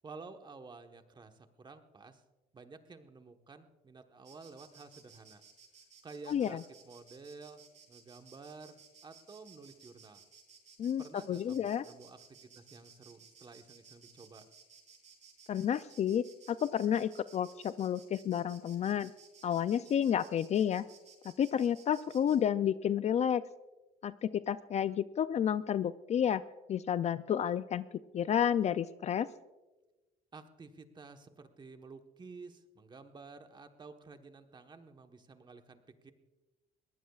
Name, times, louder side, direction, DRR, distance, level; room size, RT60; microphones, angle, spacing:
voice 1, 0.0-2.2 2.5-5.4 6.0-7.6 7.9-10.2 11.0-14.4 30.3-36.1, right 4 dB, 25° right, 6 dB, 1.2 m, -52 dB
Insect, 4.2-22.4, right 6 dB, 45° right, 5.6 m, -58 dB
voice 2, 6.3-6.6 10.8-11.8 15.5-19.1 19.4-20.8 21.4-23.4 24.0-26.4 26.7-27.8 28.1-29.3, left 9 dB, 40° left, 14 dB, 0.4 m, -31 dB
22.5 x 18.5 x 2.4 m, 1.1 s
cardioid pair, 110°, 17 cm